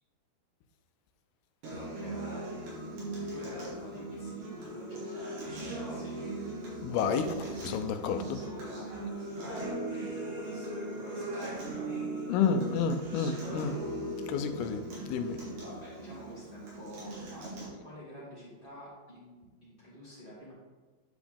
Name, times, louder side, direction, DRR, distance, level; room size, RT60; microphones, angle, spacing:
Acoustic guitar, 1.6-17.6, right 2 dB, 65° right, 3.6 m, -39 dB
voice 1, 1.7-2.5 3.2-6.3 8.1-8.9 9.3-12.0 15.2-20.5, equal, 15° left, -9 dB, 2.0 m, -48 dB
voice 2, 6.8-8.4 12.3-13.8 14.3-15.4, left 6 dB, 85° left, 8 dB, 2.5 m, -30 dB
10.5 x 5.0 x 3.5 m, 1.3 s
omnidirectional pair, 4.4 m